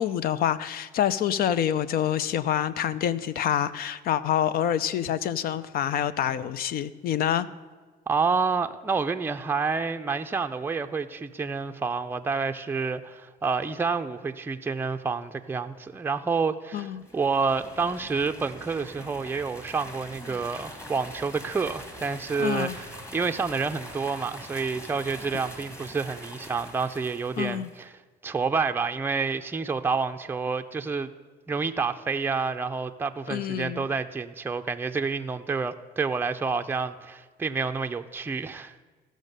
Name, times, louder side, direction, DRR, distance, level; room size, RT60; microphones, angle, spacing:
voice 1, 0.0-7.5 16.7-17.0 22.4-22.8 27.4-27.7 33.3-33.9, left 10 dB, 60° left, 0.6 m, -27 dB
voice 2, 8.1-22.9 23.1-27.9 28.2-31.1 31.5-38.7, right 4 dB, 15° right, 0.5 m, -29 dB
sound 1, 17.0-27.8, equal, 15° left, 2.0 m, -43 dB
15.5 x 6.3 x 6.6 m
cardioid pair, 110°, 17 cm